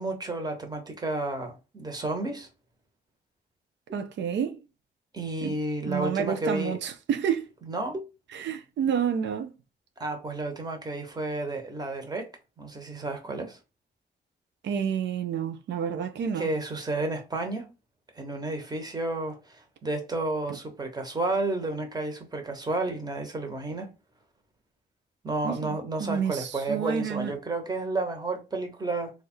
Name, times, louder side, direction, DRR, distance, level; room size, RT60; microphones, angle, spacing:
voice 1, 0.0-2.5 5.1-6.8 7.6-8.0 10.0-12.3 12.6-13.6 16.4-17.7 18.1-23.9 25.2-29.1, right 2 dB, 20° right, 1.1 m, -31 dB
voice 2, 3.9-4.6 5.4-5.6 5.9-7.5 8.3-9.5 14.6-16.5 25.4-27.3, right 8 dB, 90° right, 0.5 m, -29 dB
3.3 x 2.4 x 4.4 m
wide cardioid pair, 115°, 18 cm